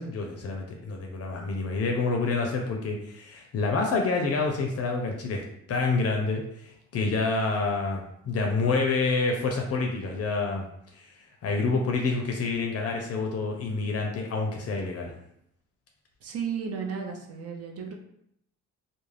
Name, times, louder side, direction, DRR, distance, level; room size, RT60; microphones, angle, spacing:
voice 1, 0.0-5.4 5.7-10.7 11.0-11.1 11.4-15.1, left 3 dB, 55° left, 1 dB, 0.5 m, -28 dB
voice 2, 16.2-17.9, right 6 dB, 55° right, 1 dB, 0.6 m, -34 dB
2.4 x 2.1 x 3.2 m, 0.75 s
cardioid pair, 90°, 30 cm